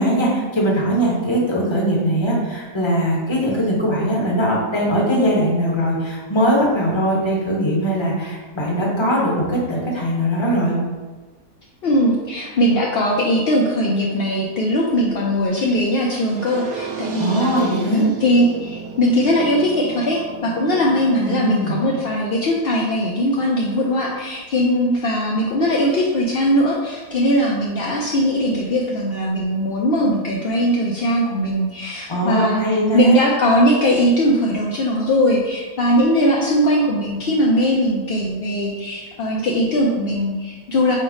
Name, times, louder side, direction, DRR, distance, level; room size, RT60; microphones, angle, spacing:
voice 1, 0.0-10.8 17.2-18.0 21.3-21.8 32.1-33.2, equal, 25° left, -3 dB, 0.8 m, -20 dB
voice 2, 11.8-17.5 17.9-41.0, equal, 70° left, -3 dB, 0.5 m, -20 dB
sound 1, 16.2-22.1, right 6 dB, 80° right, 1.1 m, -34 dB
5.5 x 2.0 x 4.8 m, 1.3 s
omnidirectional pair, 1.5 m